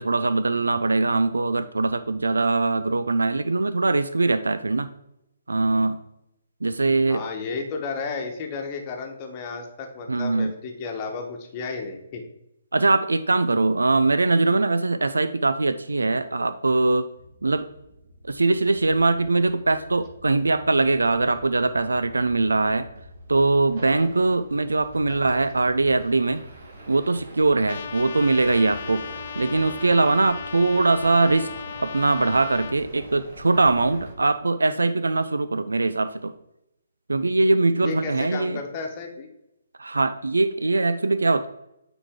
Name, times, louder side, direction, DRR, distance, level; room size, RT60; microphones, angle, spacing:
voice 1, 0.0-4.9 5.5-6.0 6.6-7.2 10.1-10.5 12.7-17.1 17.4-17.7 18.3-22.9 23.3-26.4 26.9-29.0 29.4-31.5 31.8-36.3 37.1-38.6 39.8-41.5, right 3 dB, 80° right, 12 dB, 0.4 m, -22 dB
voice 2, 7.1-12.2 25.1-25.2 25.5-25.6 37.8-39.3, left 4 dB, 30° left, 2 dB, 1.2 m, -33 dB
sound 1, 17.2-34.1, right 1 dB, 55° right, 1.8 m, -44 dB
Trumpet, 27.7-32.8, left 8 dB, 50° left, 0.3 m, -37 dB
8.8 x 4.0 x 3.7 m, 0.86 s
figure-of-eight pair, 140°, 0 cm